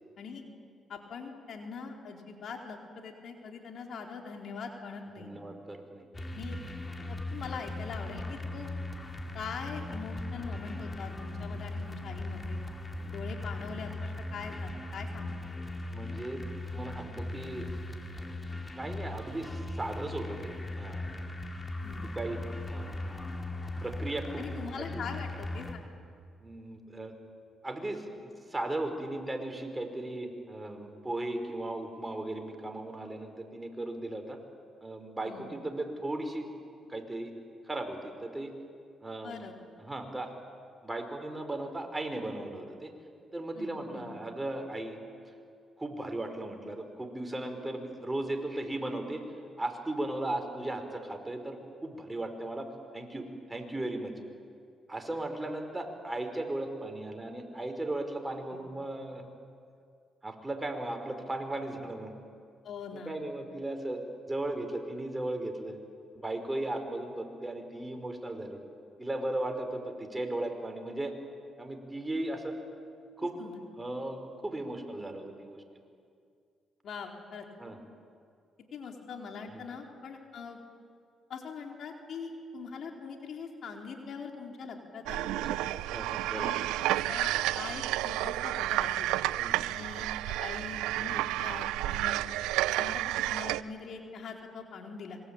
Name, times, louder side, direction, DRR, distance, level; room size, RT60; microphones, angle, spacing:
voice 1, 0.9-5.3 6.3-6.6 7.1-8.7 9.3-12.6 13.1-15.3 21.8-22.1 24.4-25.8 35.3-35.5 39.2-39.5 43.6-44.1 58.5-58.6 62.6-63.1 73.4-73.6 76.8-77.5 78.7-80.6 81.3-85.5 86.3-86.6 86.9-89.1 89.7-92.2 92.7-95.2, left 5 dB, 65° left, 2 dB, 4.2 m, -42 dB
voice 2, 5.2-6.1 13.0-13.1 15.9-16.4 16.7-17.7 18.7-21.3 22.1-22.4 22.7-23.4 23.8-24.4 24.9-25.0 26.4-27.1 27.6-34.4 34.8-36.5 36.9-37.3 37.6-38.5 39.0-39.4 39.8-40.3 40.8-42.9 43.3-45.0 45.8-49.2 49.6-52.7 52.9-54.1 54.9-59.2 60.2-62.1 62.9-64.0 64.3-65.8 66.1-68.6 69.0-71.1 71.6-72.5 73.2-73.4 73.8-75.6 77.6-77.8 79.5-79.7 85.2-85.6 85.9-86.6 89.4-89.6, right 1 dB, 15° right, 5 dB, 4.8 m, -36 dB
sound 1, 6.1-25.7, left 2 dB, 25° left, 4.1 m, -38 dB
sound 2, 85.1-93.6, right 15 dB, 90° right, 0.6 m, -31 dB
26.0 x 23.5 x 9.0 m, 2.3 s
supercardioid pair, 60°, 0 cm